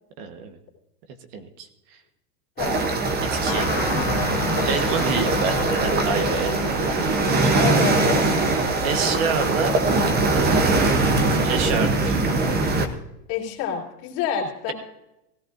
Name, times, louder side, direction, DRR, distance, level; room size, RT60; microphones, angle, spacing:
voice 1, 0.2-0.6 1.3-2.0 3.3-3.7 4.6-7.5 8.8-9.8 10.3-10.8 11.4-12.3, right 5 dB, 50° right, 7 dB, 1.3 m, -29 dB
voice 2, 2.6-2.9 7.6-8.2 13.3-14.7, left 8 dB, 50° left, -2 dB, 3.1 m, -28 dB
sound 1, 2.6-12.9, right 3 dB, 20° right, 0.8 m, -22 dB
sound 2, 3.5-11.2, left 9 dB, 65° left, 1.6 m, -36 dB
sound 3, 4.0-12.7, right 3 dB, 65° right, 5.9 m, -37 dB
17.0 x 14.0 x 2.6 m, 0.90 s
supercardioid pair, 140°, 46 cm